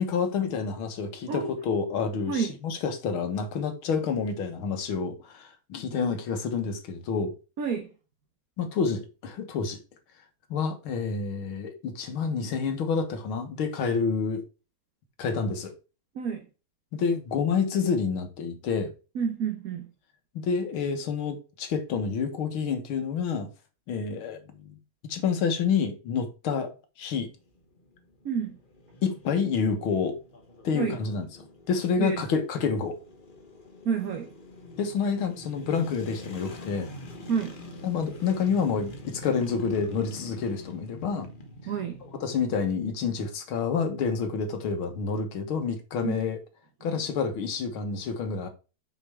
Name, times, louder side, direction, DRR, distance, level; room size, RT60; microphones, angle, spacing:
voice 1, 0.0-7.3 8.6-9.8 10.5-14.4 15.2-15.7 16.9-18.9 20.4-23.5 23.9-24.8 25.1-26.7 27.0-27.3 29.0-30.2 30.6-33.0 34.8-36.9 37.8-41.3 42.2-46.4 46.8-48.5, left 5 dB, 80° left, 2.1 m, -28 dB
voice 2, 7.6-7.9 16.1-16.5 19.1-19.9 28.2-28.6 30.7-31.0 32.0-32.2 33.8-34.3 37.3-37.5 41.7-42.0 46.0-46.2, right 7 dB, 50° right, 1.3 m, -29 dB
sound 1, 27.3-42.3, left 1 dB, 30° left, 1.1 m, -45 dB
6.0 x 6.0 x 3.4 m
omnidirectional pair, 2.2 m